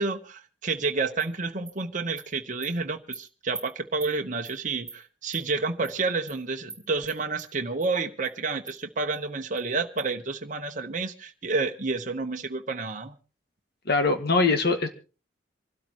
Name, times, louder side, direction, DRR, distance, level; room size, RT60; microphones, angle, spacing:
voice 1, 0.0-13.2, right 3 dB, 45° right, 1.0 m, -30 dB
Animal, 1.2-1.3 1.7-1.8 2.2-2.3 2.6-2.7 3.1-3.2 3.5-3.6 4.0-4.1 4.4-4.6 4.9-5.0 5.3-5.4 5.8-6.0 6.3-6.4 6.7-6.8 7.1-7.5 7.8-7.9 8.2-8.3 8.7-8.8 9.1-9.2 9.6-9.7 10.0-10.1, right 3 dB, 5° right, 3.8 m, -41 dB
voice 2, 13.9-14.9, left 3 dB, 55° left, 2.0 m, -22 dB
26.5 x 12.5 x 3.0 m
head